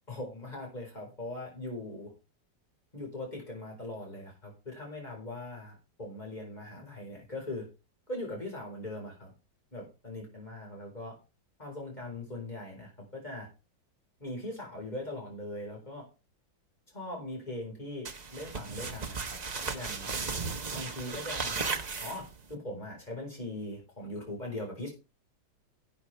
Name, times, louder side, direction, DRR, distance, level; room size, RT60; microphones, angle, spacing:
voice 1, 0.1-2.1 2.9-7.7 8.1-9.3 9.7-11.1 11.6-13.5 14.2-16.1 16.9-19.4 19.7-20.2 20.7-21.6 22.0-24.9, left 1 dB, 20° left, -1 dB, 4.8 m, -40 dB
sound 1, 18.0-22.5, right 4 dB, 60° right, 0.4 m, -35 dB
12.0 x 8.5 x 3.4 m, 0.30 s
omnidirectional pair, 2.2 m